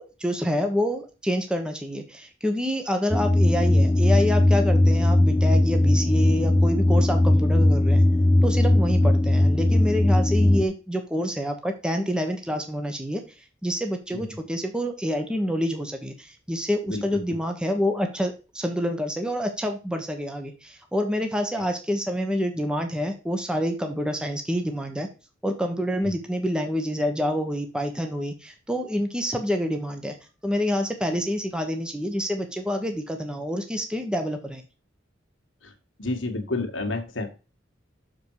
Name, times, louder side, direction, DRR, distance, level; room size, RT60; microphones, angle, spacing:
voice 1, 0.0-8.0 8.4-13.2 13.6-25.1 25.4-30.2 30.4-34.6, equal, 5° right, 4 dB, 1.0 m, -27 dB
sound 1, 3.1-10.7, left 1 dB, 10° left, 0.4 m, -19 dB
voice 2, 36.0-37.3, left 2 dB, 80° left, 4 dB, 1.7 m, -29 dB
6.8 x 5.2 x 4.7 m, 0.32 s
head